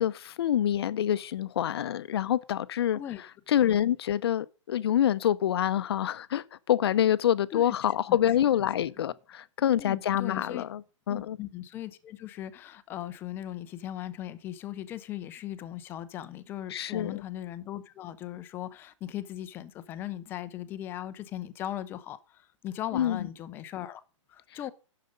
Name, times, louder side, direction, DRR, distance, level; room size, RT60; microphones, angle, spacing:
voice 1, 0.0-3.0 3.5-10.8 11.1-11.4 16.7-17.2 22.9-23.3, left 10 dB, 50° left, 0.6 m, -26 dB
voice 2, 9.8-10.7 11.1-24.0 24.3-24.7, left 12 dB, 15° left, 0.5 m, -38 dB
10.5 x 6.6 x 5.2 m
hypercardioid pair, 155°, 16 cm